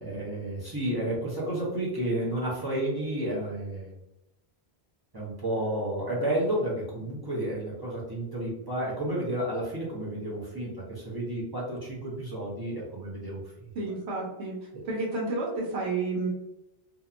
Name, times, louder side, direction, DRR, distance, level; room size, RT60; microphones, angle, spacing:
voice 1, 0.0-3.9 5.1-13.7 14.7-14.8, right 1 dB, 30° right, -6 dB, 0.6 m, -31 dB
voice 2, 13.7-14.6 14.9-16.3, right 3 dB, 85° right, -3 dB, 1.0 m, -30 dB
2.8 x 2.1 x 2.4 m, 0.88 s
omnidirectional pair, 1.1 m